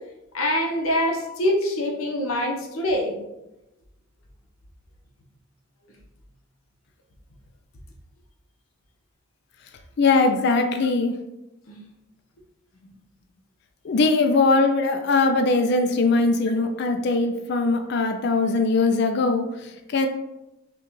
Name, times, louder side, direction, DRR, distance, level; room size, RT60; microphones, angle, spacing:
voice 1, 0.3-3.1 11.7-11.8, left 1 dB, 85° left, 1 dB, 0.8 m, -24 dB
voice 2, 10.0-11.2 13.8-20.1, left 3 dB, 50° left, 5 dB, 0.3 m, -21 dB
5.8 x 2.3 x 3.1 m, 0.93 s
head